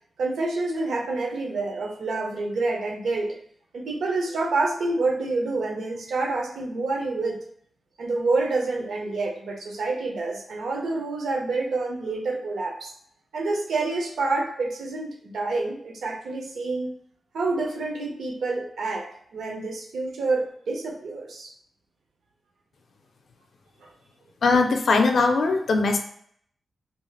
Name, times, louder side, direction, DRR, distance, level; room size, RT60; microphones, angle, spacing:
voice 1, 0.2-3.4 3.7-7.4 8.0-12.9 13.3-16.9 17.3-21.5 23.8-23.9, right 3 dB, 90° right, 1 dB, 0.7 m, -28 dB
voice 2, 24.4-26.0, left 3 dB, 60° left, 4 dB, 0.4 m, -20 dB
3.2 x 2.8 x 2.3 m, 0.64 s
wide cardioid pair, 160°, 0 cm